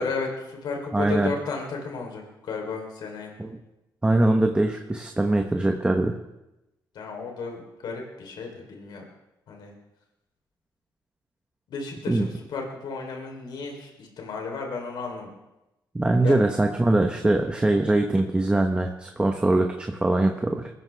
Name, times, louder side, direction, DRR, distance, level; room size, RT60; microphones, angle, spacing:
voice 1, 0.0-3.3 6.9-9.0 9.5-9.7 11.7-15.3 16.2-16.5, left 4 dB, 70° left, 1 dB, 3.7 m, -33 dB
voice 2, 0.9-1.3 3.4-3.6 4.0-6.1 12.1-12.3 15.9-20.7, right 2 dB, 15° right, 3 dB, 1.2 m, -22 dB
22.0 x 14.0 x 3.5 m, 0.94 s
cardioid pair, 100°, 8 cm